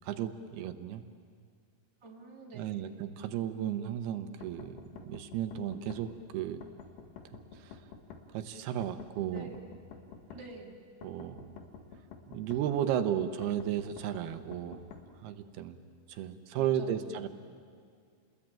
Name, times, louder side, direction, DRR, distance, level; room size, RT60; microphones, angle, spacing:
voice 1, 0.0-1.0 2.5-6.6 7.5-7.8 8.3-9.5 11.0-11.4 12.3-14.8 15.2-15.8 16.1-17.3, right 10 dB, 80° right, 9 dB, 2.9 m, -34 dB
voice 2, 2.0-3.0 9.3-9.8 10.3-10.8 16.5-17.2, right 3 dB, 10° right, -1 dB, 2.2 m, -49 dB
sound 1, 4.4-6.0 6.6-8.2 8.8-10.4 11.0-12.6 13.4-15.0, left 5 dB, 90° left, 3.8 m, -50 dB
29.5 x 20.5 x 9.0 m, 2.2 s
omnidirectional pair, 4.6 m